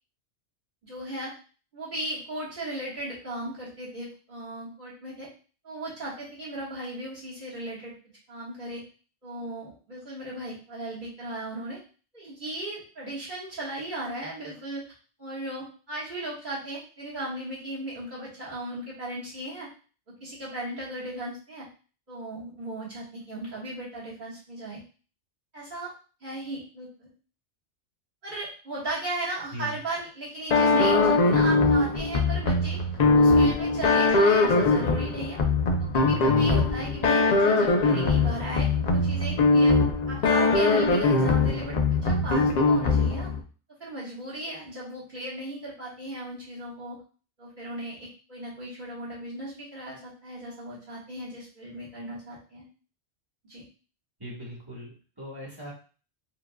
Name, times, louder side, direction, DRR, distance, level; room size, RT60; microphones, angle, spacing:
voice 1, 0.8-1.3 1.7-5.3 5.6-7.9 8.3-8.8 9.2-11.8 12.1-14.8 15.2-19.7 20.2-21.7 22.1-24.8 25.5-25.9 26.2-27.1 28.2-32.8 33.1-35.4 35.9-39.8 40.1-43.3 43.8-47.0 47.4-52.7 53.5-53.6, right 1 dB, 45° right, -8 dB, 1.7 m, -36 dB
sound 1, 30.5-43.4, left 3 dB, 50° left, 0.5 m, -22 dB
voice 2, 54.2-55.7, equal, 20° right, -5 dB, 1.3 m, -40 dB
4.7 x 2.5 x 2.3 m, 0.38 s
omnidirectional pair, 1.2 m